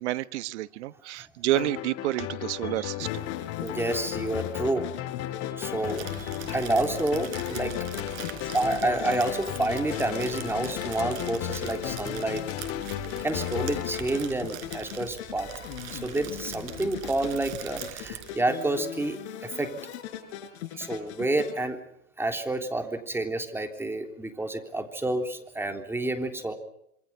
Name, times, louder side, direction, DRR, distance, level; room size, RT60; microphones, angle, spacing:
voice 1, 0.0-3.2 8.2-8.4 20.8-20.9, right 16 dB, 60° right, 15 dB, 1.3 m, -30 dB
sound 1, 1.5-15.1, left 14 dB, 35° left, 2.3 m, -35 dB
sound 2, 3.0-21.6, left 11 dB, 60° left, 6.7 m, -40 dB
voice 2, 3.6-4.9 5.4-7.7 8.4-12.5 13.2-15.5 15.9-19.8 20.8-21.8 22.2-26.5, right 2 dB, 5° right, 5 dB, 3.5 m, -29 dB
Crumpling crinkling, 5.8-18.4, right 11 dB, 45° right, 4.8 m, -42 dB
27.0 x 26.5 x 5.9 m, 0.74 s
hypercardioid pair, 130°, 38 cm